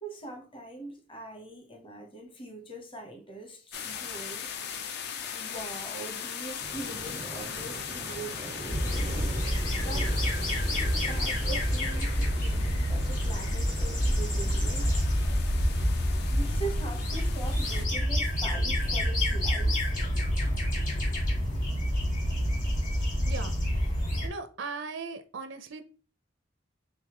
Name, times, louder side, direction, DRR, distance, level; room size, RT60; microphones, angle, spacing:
voice 1, 0.0-4.5 5.3-9.1 9.8-10.1 10.7-14.9 16.3-19.9, right 2 dB, 30° left, 0.8 m, -42 dB
sound 1, 3.7-17.8, left 7 dB, 60° left, 0.5 m, -40 dB
Waves surf, 6.6-15.0, right 2 dB, 30° right, 0.3 m, -42 dB
sound 2, 8.7-24.3, equal, 45° left, 1.5 m, -28 dB
voice 2, 23.2-23.6 24.2-25.9, right 4 dB, 80° right, 0.6 m, -38 dB
3.5 x 3.4 x 2.9 m
head